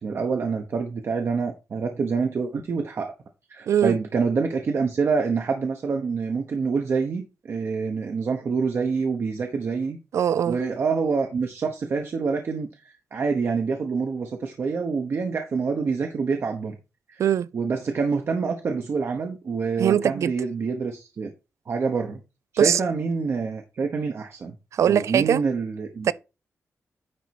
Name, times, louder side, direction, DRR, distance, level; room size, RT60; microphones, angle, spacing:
voice 1, 0.0-3.1 3.5-10.0 10.5-16.8 17.1-17.2 17.5-21.3 21.7-22.2 22.5-24.5 24.9-26.1, right 5 dB, 55° right, 1.0 m, -26 dB
voice 2, 10.1-10.6 17.2-17.5 19.8-20.3 22.6-22.8 24.7-25.4 26.1-26.2, right 9 dB, 80° right, 0.4 m, -21 dB
10.0 x 4.1 x 4.6 m
wide cardioid pair, 145°, 5 cm